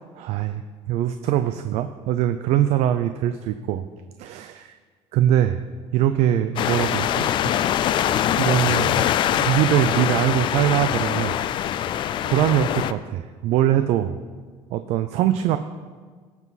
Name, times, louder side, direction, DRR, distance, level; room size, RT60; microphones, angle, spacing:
voice 1, 0.1-3.9 4.2-4.7 5.1-5.6 5.9-7.5 8.4-11.4 11.8-14.2 14.7-15.6, right 11 dB, 65° right, 9 dB, 0.5 m, -22 dB
sound 1, 6.6-12.9, left 11 dB, 45° left, 0.4 m, -23 dB
18.5 x 7.3 x 4.1 m, 1.5 s
cardioid pair, 160°, 12 cm